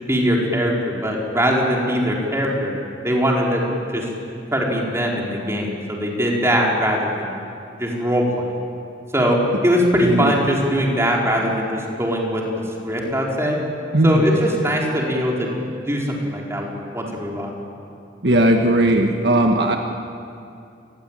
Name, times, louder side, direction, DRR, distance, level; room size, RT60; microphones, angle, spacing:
voice 1, 0.0-2.7 3.0-3.7 3.9-4.1 4.5-7.3 7.8-8.5 9.1-12.4 12.8-13.6 14.0-15.5 15.8-17.6, equal, 15° right, -2 dB, 4.5 m, -21 dB
voice 2, 10.0-10.3 13.9-14.3 18.2-19.8, right 1 dB, 65° right, 3 dB, 1.6 m, -17 dB
28.0 x 21.0 x 9.1 m, 2.5 s
head